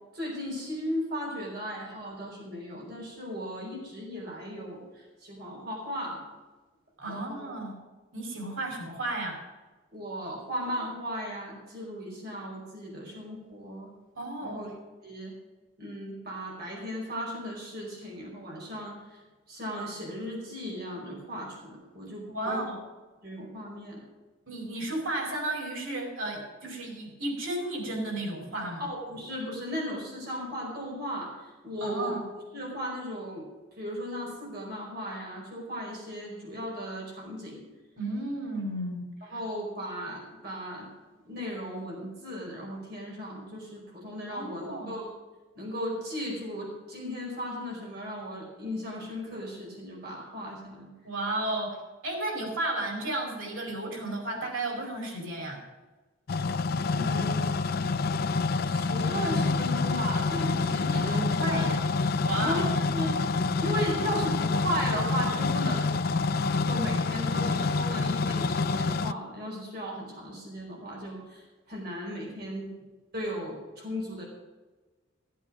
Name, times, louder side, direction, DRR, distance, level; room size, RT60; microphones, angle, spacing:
voice 1, 0.1-6.2 7.1-7.4 9.9-13.9 14.4-14.7 15.0-15.3 15.8-19.2 19.5-22.6 23.2-24.0 28.8-32.1 32.5-33.4 33.8-37.6 39.2-40.9 41.3-45.1 45.5-50.9 56.9-57.5 58.6-61.6 62.3-63.2 63.6-65.9 66.6-72.7 73.1-74.2, equal, 50° right, -3 dB, 4.9 m, -36 dB
voice 2, 7.0-7.8 8.1-9.4 14.1-14.6 22.3-22.8 24.5-28.9 31.8-32.3 38.0-39.4 44.3-44.9 51.0-51.8 52.0-55.6 60.9-61.9 62.2-62.8, right 1 dB, 85° right, 0 dB, 5.1 m, -33 dB
sound 1, 56.3-69.1, left 4 dB, 50° left, 0.4 m, -27 dB
15.0 x 8.5 x 6.1 m, 1.3 s
head